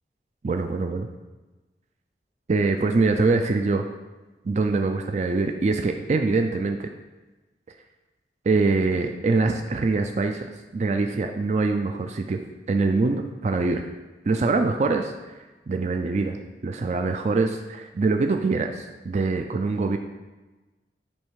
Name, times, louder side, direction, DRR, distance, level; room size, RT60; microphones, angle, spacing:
voice 1, 0.4-1.1 2.5-3.8 4.4-6.9 8.5-12.4 12.7-13.8 14.3-15.4 15.7-16.4 16.6-20.0, right 3 dB, 40° right, 5 dB, 0.4 m, -24 dB
8.6 x 3.2 x 4.7 m, 1.2 s
head